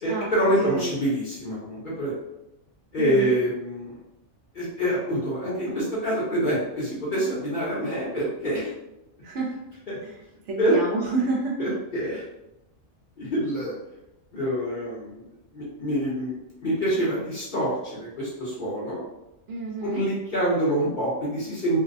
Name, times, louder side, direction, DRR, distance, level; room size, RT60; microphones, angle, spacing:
voice 1, 0.0-2.2 2.9-4.0 4.5-8.7 9.9-10.0 10.6-10.8 11.6-12.2 13.2-13.8 14.3-15.2 15.5-19.0 19.8-21.8, right 1 dB, 45° left, -7 dB, 0.8 m, -26 dB
voice 2, 0.6-0.9 3.0-3.3 9.2-9.5 10.0-10.2 10.5-11.6 19.5-20.1, right 3 dB, 70° right, -3 dB, 0.8 m, -29 dB
2.6 x 2.0 x 2.5 m, 0.91 s
omnidirectional pair, 1.4 m